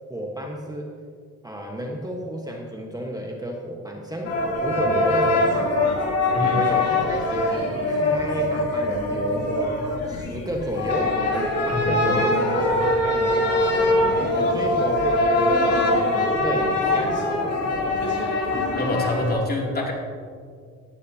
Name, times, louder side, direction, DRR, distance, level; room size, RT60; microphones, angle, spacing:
voice 1, 0.1-0.9 1.4-5.8 6.5-9.8 10.1-14.0 14.3-15.2 15.6-17.2, equal, 10° right, 0 dB, 1.3 m, -32 dB
sound 1, 4.2-19.3, left 2 dB, 55° left, 3.0 m, -22 dB
voice 2, 18.8-19.9, left 1 dB, 30° left, -2 dB, 2.8 m, -26 dB
17.5 x 11.5 x 2.9 m, 2.1 s
cardioid pair, 90°, 30 cm